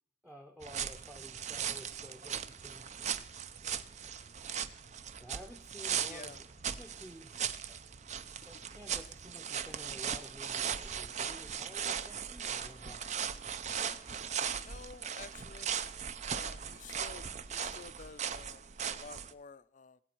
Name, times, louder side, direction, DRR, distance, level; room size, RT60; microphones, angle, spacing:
voice 1, 0.2-2.9 5.2-6.4 6.6-7.8 8.4-13.3, equal, 5° right, 0.7 m, -52 dB
sound 1, 0.6-19.3, right 8 dB, 40° right, 0.5 m, -38 dB
voice 2, 6.1-6.4 14.7-15.8 16.3-20.0, left 5 dB, 40° left, 0.5 m, -51 dB
20.5 x 7.9 x 4.5 m
head